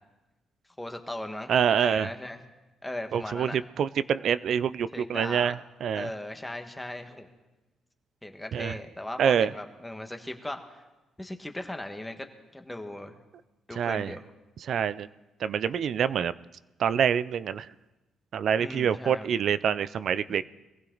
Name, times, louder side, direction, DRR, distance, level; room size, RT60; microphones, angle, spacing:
voice 1, 0.8-1.5 1.8-2.4 2.8-3.6 4.9-5.5 5.9-7.3 8.2-10.8 11.2-12.3 12.5-13.2 13.7-14.2 18.6-19.3 20.3-20.4, left 1 dB, 10° left, 5 dB, 1.5 m, -38 dB
voice 2, 1.5-2.1 3.1-6.1 8.5-8.8 9.2-9.5 13.8-14.2 14.7-15.1 15.4-16.3 16.8-17.7 18.3-20.4, right 8 dB, 65° right, 16 dB, 0.4 m, -26 dB
22.0 x 15.5 x 4.0 m, 1.1 s
cardioid pair, 90°, 0 cm